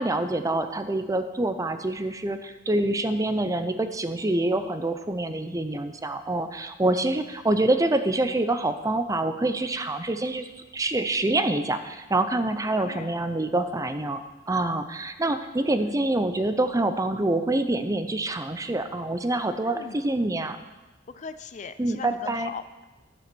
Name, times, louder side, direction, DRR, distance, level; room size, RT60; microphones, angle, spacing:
voice 1, 0.0-10.5 10.7-20.6 21.8-22.5, right 2 dB, 20° right, 9 dB, 0.6 m, -26 dB
voice 2, 12.8-13.2 19.6-20.0 21.1-22.8, left 5 dB, 40° left, 12 dB, 0.5 m, -40 dB
11.5 x 7.8 x 6.2 m, 1.1 s
head